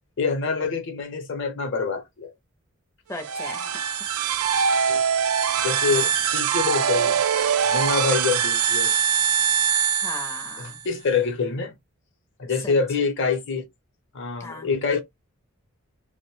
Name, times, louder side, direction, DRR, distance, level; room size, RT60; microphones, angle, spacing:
voice 1, 0.2-2.3 4.9-5.0 5.6-7.2 7.5-8.9 10.6-11.7 12.4-13.7 14.1-15.0, left 5 dB, 60° left, 0.6 m, -26 dB
voice 2, 3.1-3.8 5.9-6.1 10.0-10.8 12.6-12.7 14.4-14.7, left 2 dB, 15° left, 0.4 m, -37 dB
sound 1, 3.1-10.8, right 7 dB, 75° right, 0.4 m, -23 dB
2.5 x 2.0 x 2.9 m
head